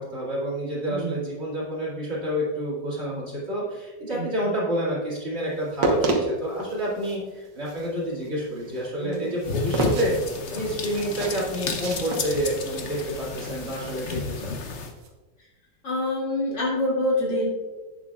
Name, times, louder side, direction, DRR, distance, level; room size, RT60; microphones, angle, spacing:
voice 1, 0.0-10.2 10.5-14.5, right 1 dB, 35° right, -6 dB, 2.6 m, -29 dB
voice 2, 0.8-1.2 4.1-4.5 9.0-9.3 15.8-17.5, left 1 dB, 75° left, -4 dB, 3.2 m, -26 dB
sound 1, 5.5-15.1, right 2 dB, 70° right, 1.8 m, -31 dB
sound 2, 9.4-14.9, left 5 dB, 50° left, 0.9 m, -32 dB
11.0 x 8.6 x 2.4 m, 1.2 s
omnidirectional pair, 2.0 m